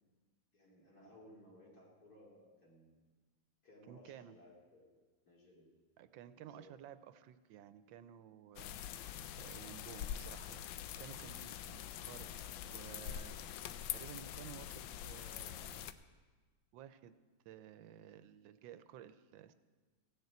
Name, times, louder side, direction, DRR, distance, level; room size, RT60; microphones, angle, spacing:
voice 1, 0.5-2.9 3.6-5.0 5.2-5.7 6.3-6.7, left 1 dB, 50° left, -4 dB, 3.3 m, -61 dB
voice 2, 3.9-4.4 6.0-10.6 11.0-13.4 13.9-15.9 16.7-17.1 17.4-19.5, right 10 dB, 85° right, 12 dB, 1.4 m, -54 dB
sound 1, 8.6-15.9, left 10 dB, 85° left, 1.3 m, -45 dB
16.0 x 6.6 x 8.2 m, 1.3 s
omnidirectional pair, 2.1 m